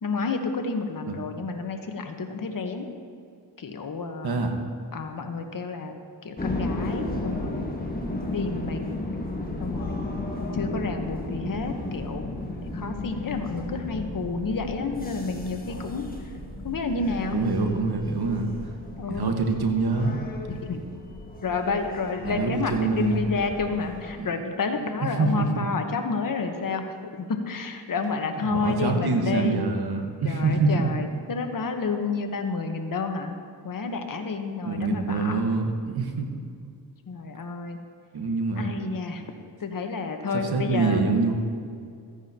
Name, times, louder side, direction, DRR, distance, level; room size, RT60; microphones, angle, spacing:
voice 1, 0.0-2.9 3.6-4.4 4.9-6.0 6.2-7.7 8.3-9.1 9.6-10.2 10.5-12.3 12.6-16.1 16.6-17.4 19.0-19.3 20.5-20.8 21.4-29.6 30.2-33.4 33.6-35.4 37.1-37.8 38.6-39.2 39.6-41.0, left 4 dB, 45° left, 5 dB, 1.2 m, -30 dB
voice 2, 4.2-4.6 17.3-18.5 19.1-20.2 22.2-23.2 24.2-24.3 25.2-25.7 28.4-30.9 34.6-36.3 38.1-38.7 40.5-41.3, right 3 dB, 55° right, 3 dB, 1.5 m, -25 dB
sound 1, 6.4-24.1, left 2 dB, 20° left, 1.6 m, -34 dB
14.5 x 9.8 x 2.9 m, 2.3 s
cardioid pair, 70°, 45 cm